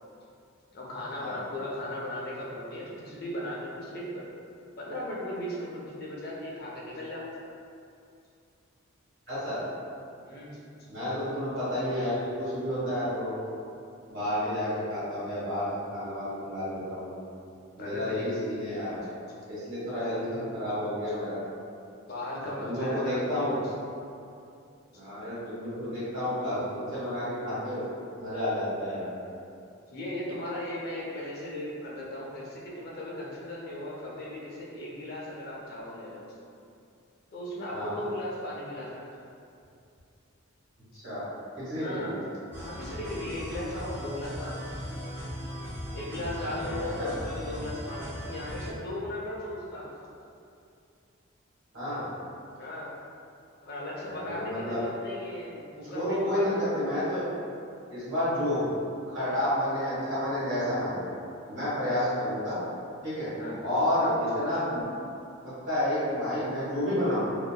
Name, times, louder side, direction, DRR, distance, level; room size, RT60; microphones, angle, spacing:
voice 1, 0.7-4.2 4.8-7.3 10.2-10.6 17.8-18.4 22.1-23.7 29.9-36.3 37.3-39.1 41.8-42.2 42.6-44.7 45.9-49.9 52.6-52.9 53.6-56.9 61.8-61.9 63.4-63.6 64.0-64.1, left 1 dB, 45° left, -5 dB, 0.5 m, -37 dB
voice 2, 9.3-9.6 10.9-13.4 14.1-17.2 17.7-19.0 19.5-21.4 22.6-23.6 24.9-27.8 28.2-29.1 37.7-38.0 40.9-41.3 41.6-42.2 46.5-47.1 51.7-52.0 54.1-54.8 55.9-57.2 57.9-58.7 59.1-61.0 61.5-62.6 63.0-63.3 63.6-64.8 65.4-67.3, left 1 dB, 55° right, -12 dB, 1.3 m, -30 dB
sound 1, 42.5-48.7, equal, 10° right, 0.7 m, -38 dB
2.7 x 2.3 x 2.2 m, 2.5 s
head